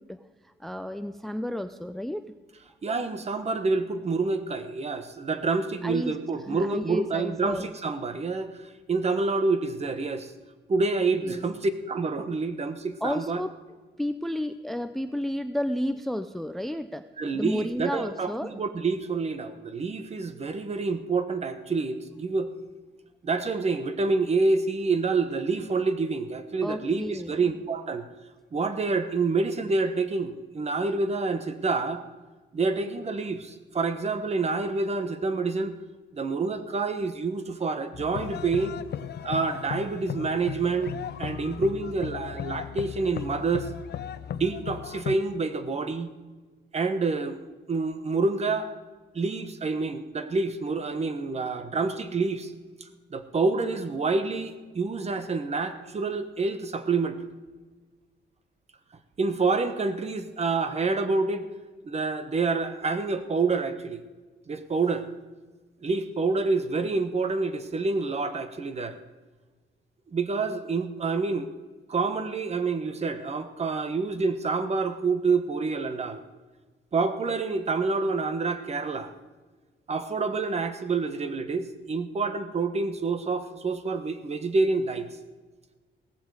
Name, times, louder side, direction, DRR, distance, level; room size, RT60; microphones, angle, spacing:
voice 1, 0.0-2.2 5.8-6.2 6.5-7.7 11.2-11.4 13.0-13.5 14.0-17.0 17.3-18.6 26.6-27.4, left 1 dB, ahead, 10 dB, 0.5 m, -32 dB
voice 2, 2.8-10.3 10.7-13.4 17.2-22.5 23.2-28.1 28.5-32.0 32.5-35.7 36.1-38.8 39.2-43.7 44.3-46.1 46.7-47.4 47.7-48.7 49.1-52.5 52.8-57.2 59.2-61.5 61.8-64.0 64.5-65.1 65.8-69.0 70.1-71.5 71.9-76.2 76.9-79.1 79.9-85.1, right 4 dB, 35° right, 10 dB, 1.1 m, -27 dB
sound 1, 37.9-45.2, left 9 dB, 60° left, 0.7 m, -36 dB
17.5 x 14.5 x 4.9 m, 1.3 s
cardioid pair, 130°, 19 cm